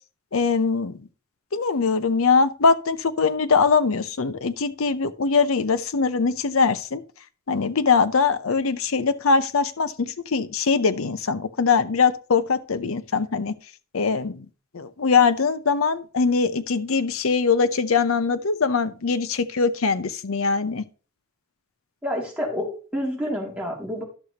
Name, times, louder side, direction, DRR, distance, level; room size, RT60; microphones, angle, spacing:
voice 1, 0.3-1.0 1.5-7.0 7.5-13.5 13.9-14.5 14.7-20.8, left 5 dB, 70° left, 0.7 m, -22 dB
voice 2, 22.0-24.0, equal, 5° right, 2.5 m, -28 dB
11.5 x 6.5 x 2.9 m
head